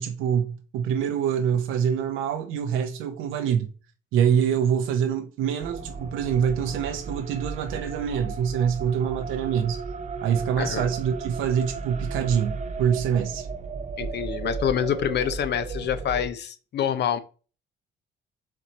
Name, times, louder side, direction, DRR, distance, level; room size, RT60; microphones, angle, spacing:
voice 1, 0.0-3.7 4.1-9.8 10.2-13.5, right 8 dB, 90° right, 0.6 m, -25 dB
sound 1, 5.6-8.8, left 1 dB, 15° left, 1.8 m, -50 dB
sound 2, 5.6-16.3, right 4 dB, 35° right, 0.5 m, -35 dB
voice 2, 14.0-17.2, left 9 dB, 60° left, 0.6 m, -26 dB
4.3 x 3.0 x 4.0 m
cardioid pair, 90°, 20 cm